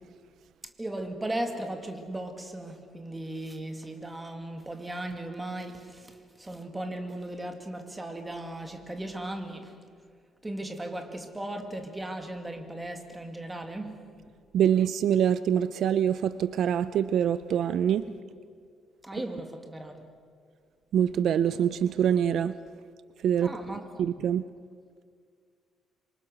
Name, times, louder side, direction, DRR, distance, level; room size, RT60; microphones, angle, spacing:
voice 1, 0.8-9.7 10.4-14.1 19.0-20.0 23.4-24.0, right 1 dB, 10° right, 5 dB, 2.2 m, -37 dB
voice 2, 14.5-18.1 20.9-22.5 23.2-24.4, right 9 dB, 60° right, 14 dB, 0.5 m, -25 dB
27.0 x 24.5 x 6.4 m, 2.1 s
cardioid pair, 145°, 0 cm